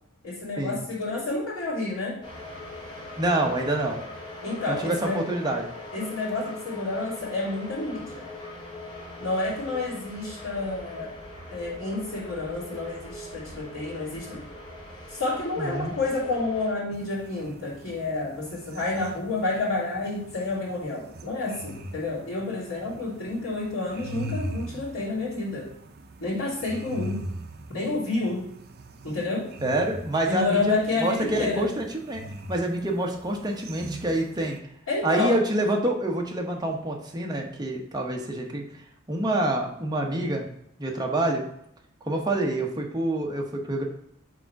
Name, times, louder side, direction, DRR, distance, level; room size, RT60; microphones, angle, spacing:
voice 1, 0.2-2.2 4.4-5.2 5.9-8.3 9.2-11.1 11.5-14.5 15.1-25.7 26.2-27.2 27.7-28.5 29.0-29.5 30.3-31.7 34.9-35.3, left 3 dB, 65° left, -10 dB, 2.5 m, -29 dB
sound 1, 2.2-16.7, left 2 dB, 25° left, 1.7 m, -41 dB
voice 2, 3.2-4.0 4.7-5.7 15.6-15.9 29.6-30.7 31.0-32.2 32.5-34.6 35.0-38.6 39.1-40.5 40.8-41.4 42.1-43.8, right 1 dB, 20° right, 1 dB, 0.9 m, -26 dB
sound 2, 16.9-34.6, right 1 dB, 50° right, 0.6 m, -41 dB
4.9 x 3.8 x 5.7 m, 0.75 s
head